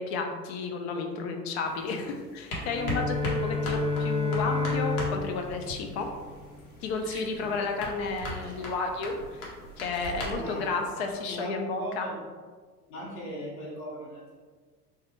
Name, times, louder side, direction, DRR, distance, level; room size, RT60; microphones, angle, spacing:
voice 1, 0.0-6.1 6.8-9.5 9.8-12.1, left 4 dB, 45° left, 3 dB, 0.5 m, -32 dB
sound 1, 1.6-11.4, left 1 dB, 65° left, 1.0 m, -40 dB
Bowed string instrument, 2.6-6.7, left 4 dB, 15° right, 0.6 m, -31 dB
Liquid, 4.2-10.4, right 3 dB, 60° right, 0.8 m, -46 dB
voice 2, 10.2-12.2 12.9-14.4, equal, 25° left, -6 dB, 0.9 m, -39 dB
3.3 x 2.3 x 2.9 m, 1.5 s
figure-of-eight pair, 85°, 47 cm